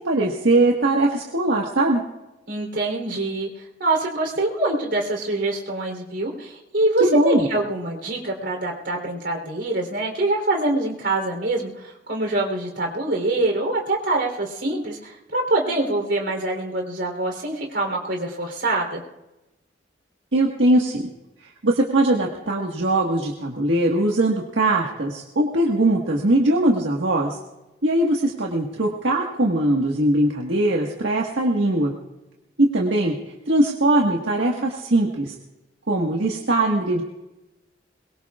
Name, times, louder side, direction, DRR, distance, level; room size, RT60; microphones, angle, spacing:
voice 1, 0.0-2.0 7.1-7.4 20.3-21.1 21.4-27.4 27.8-31.9 32.6-35.3 35.9-37.0, right 1 dB, 90° right, -1 dB, 1.6 m, -21 dB
voice 2, 2.5-19.0, right 2 dB, 70° right, 1 dB, 3.6 m, -25 dB
22.5 x 22.0 x 2.4 m, 0.99 s
head